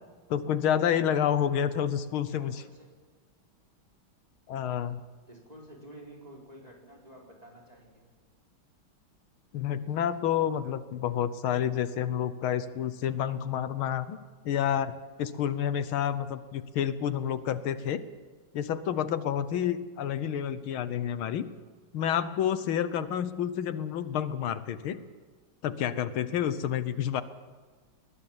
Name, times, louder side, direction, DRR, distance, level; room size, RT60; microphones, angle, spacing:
voice 1, 0.3-2.5 4.5-5.0 9.5-14.2 14.5-18.0 18.5-21.5 21.9-25.0 25.6-27.2, left 9 dB, 80° left, 13 dB, 1.8 m, -29 dB
voice 2, 2.4-3.0 5.3-8.1, right 1 dB, 15° right, -2 dB, 4.7 m, -50 dB
21.0 x 20.0 x 7.4 m, 1.4 s
omnidirectional pair, 2.3 m